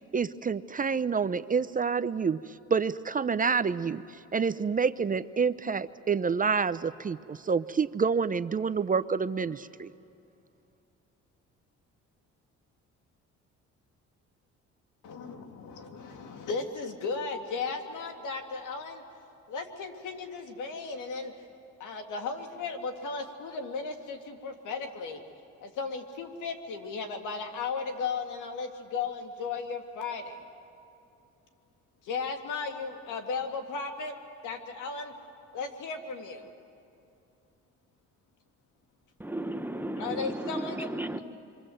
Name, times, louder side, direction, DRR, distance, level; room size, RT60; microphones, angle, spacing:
voice 1, 0.1-2.4 2.7-4.0 4.3-9.9, right 5 dB, 30° right, 14 dB, 0.5 m, -28 dB
voice 2, 15.0-19.0 19.5-21.3 21.8-25.2 25.6-30.4 32.0-34.1 34.4-35.1 35.5-36.5 40.0-40.9, left 4 dB, 85° left, 5 dB, 2.2 m, -35 dB
voice 3, 39.2-41.2, right 1 dB, 5° right, 9 dB, 1.0 m, -34 dB
27.5 x 24.0 x 7.8 m, 2.6 s
cardioid pair, 90°, 30 cm